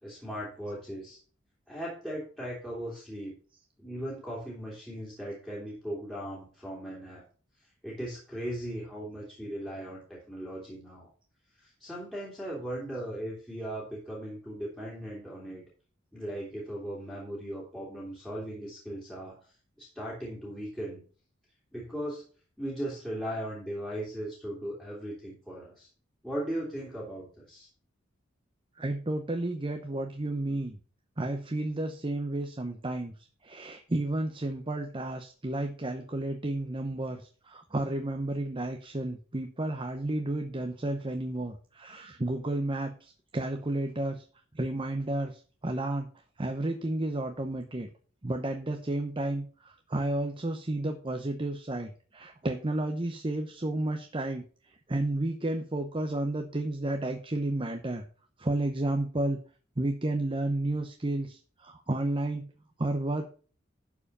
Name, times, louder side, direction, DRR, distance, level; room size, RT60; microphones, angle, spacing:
voice 1, 0.0-1.2 1.7-3.3 3.8-7.2 7.8-11.1 11.6-15.6 16.1-19.4 19.8-21.0 21.7-22.2 22.6-25.9 26.2-27.7, right 1 dB, 5° left, -5 dB, 2.9 m, -38 dB
voice 2, 28.8-30.8 31.2-33.1 33.4-44.2 44.5-46.1 46.4-47.9 48.2-54.4 54.9-58.0 58.4-59.4 59.8-62.5 62.8-63.3, right 1 dB, 25° right, 5 dB, 0.8 m, -32 dB
11.5 x 4.9 x 5.5 m, 0.40 s
head